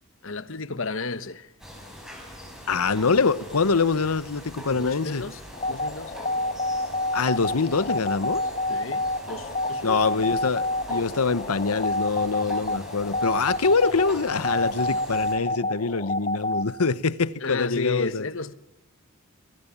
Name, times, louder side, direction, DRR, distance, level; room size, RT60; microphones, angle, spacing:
voice 1, 0.2-1.5 4.6-5.4 5.7-6.2 8.7-10.0 17.4-18.5, left 3 dB, 60° left, 1.2 m, -32 dB
sound 1, 1.6-15.3, equal, ahead, 5.9 m, -43 dB
voice 2, 2.7-5.2 7.1-8.4 9.8-18.2, left 4 dB, 80° left, 1.0 m, -24 dB
sound 2, 5.5-16.6, left 2 dB, 30° left, 0.9 m, -28 dB
26.0 x 21.5 x 7.3 m
head